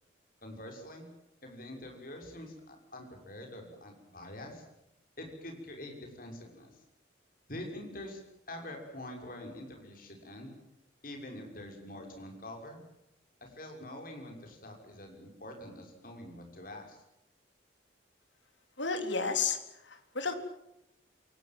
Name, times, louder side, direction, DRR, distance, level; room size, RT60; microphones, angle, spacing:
voice 1, 0.4-1.1 1.4-4.7 5.2-6.8 7.5-8.2 8.5-10.5 11.0-12.8 13.4-17.0, left 1 dB, 45° left, 3 dB, 6.2 m, -45 dB
voice 2, 18.8-19.6 19.9-20.3, left 5 dB, 75° left, 7 dB, 3.5 m, -31 dB
28.0 x 18.5 x 7.8 m, 0.83 s
head